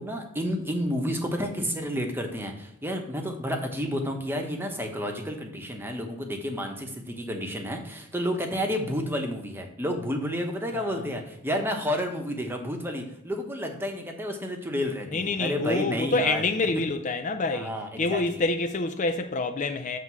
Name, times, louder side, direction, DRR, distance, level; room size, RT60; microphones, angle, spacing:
voice 1, 0.0-16.8 17.5-18.4, equal, 10° right, 1.0 m, -31 dB
voice 2, 10.7-11.1 15.1-20.0, left 3 dB, 35° left, 0.5 m, -27 dB
7.5 x 3.6 x 6.1 m
head